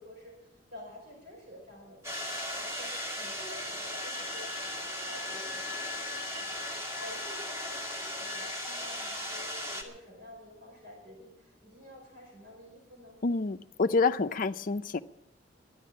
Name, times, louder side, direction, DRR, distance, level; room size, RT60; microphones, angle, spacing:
voice 1, 0.0-13.2, left 1 dB, 60° right, -2 dB, 5.2 m, -50 dB
sound 1, 2.0-9.8, left 1 dB, 15° right, 2.1 m, -37 dB
voice 2, 13.2-15.0, left 4 dB, 45° left, 9 dB, 0.5 m, -28 dB
12.5 x 11.0 x 8.5 m, 0.90 s
head